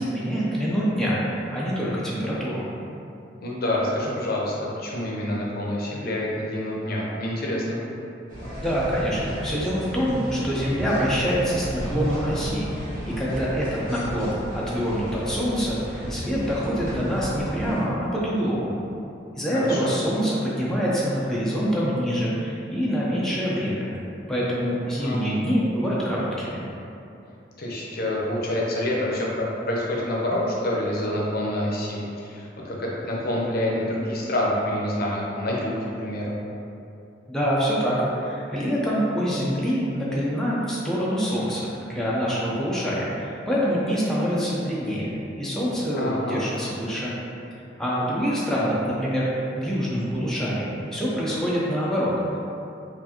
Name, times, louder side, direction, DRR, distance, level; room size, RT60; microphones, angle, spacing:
voice 1, 0.0-2.6 8.6-18.7 19.4-23.9 24.3-26.6 37.3-45.1 45.4-47.1 47.8-52.4, equal, 5° left, -7 dB, 0.4 m, -25 dB
voice 2, 3.4-7.8 19.5-19.9 25.0-25.4 27.6-36.4 46.0-46.4, left 1 dB, 55° left, -4 dB, 0.6 m, -27 dB
sound 1, 8.3-17.8, equal, 50° right, 1.0 m, -34 dB
4.5 x 2.5 x 2.8 m, 2.7 s
head